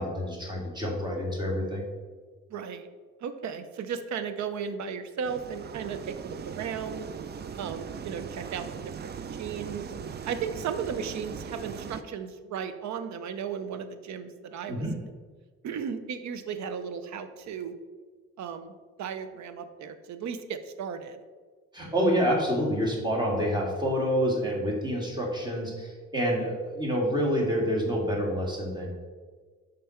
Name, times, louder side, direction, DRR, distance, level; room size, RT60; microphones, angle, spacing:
voice 1, 0.0-1.8 14.7-15.0 21.7-28.9, equal, 15° right, -2 dB, 1.9 m, -27 dB
voice 2, 2.5-2.9 3.2-7.1 7.6-8.9 9.3-9.9 10.3-14.8 15.6-17.8 18.4-21.2, right 7 dB, 65° right, 10 dB, 0.7 m, -35 dB
sound 1, 5.2-12.0, right 6 dB, 35° right, 0.4 m, -39 dB
5.6 x 5.2 x 4.4 m, 1.5 s
cardioid pair, 90°, 30 cm